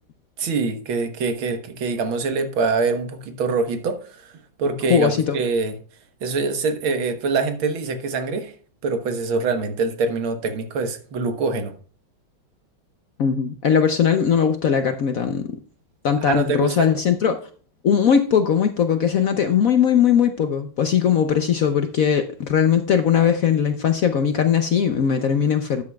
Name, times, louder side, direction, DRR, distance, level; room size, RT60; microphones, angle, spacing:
voice 1, 0.4-4.3 4.6-5.8 6.2-8.5 8.8-11.8 16.2-16.9, right 4 dB, 85° right, 2.0 m, -24 dB
voice 2, 4.9-5.4 13.2-15.5 16.0-17.4 17.8-25.8, left 8 dB, 65° left, 0.9 m, -19 dB
13.0 x 9.7 x 2.3 m
omnidirectional pair, 2.2 m